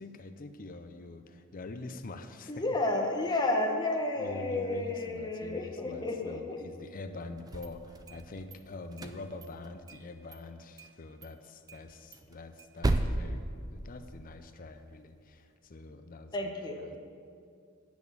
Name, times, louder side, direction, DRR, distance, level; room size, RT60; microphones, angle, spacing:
voice 1, 0.0-2.6 4.2-16.5 16.8-17.0, left 2 dB, 40° left, 9 dB, 0.5 m, -45 dB
voice 2, 2.5-6.6 16.3-16.8, left 2 dB, 20° left, 1 dB, 1.0 m, -31 dB
sound 1, 7.4-8.6 8.9-10.0 10.3-10.4 10.8-10.9 11.2-11.3 11.7-14.3, right 2 dB, 20° right, 0.4 m, -34 dB
8.7 x 6.2 x 7.1 m, 2.3 s
head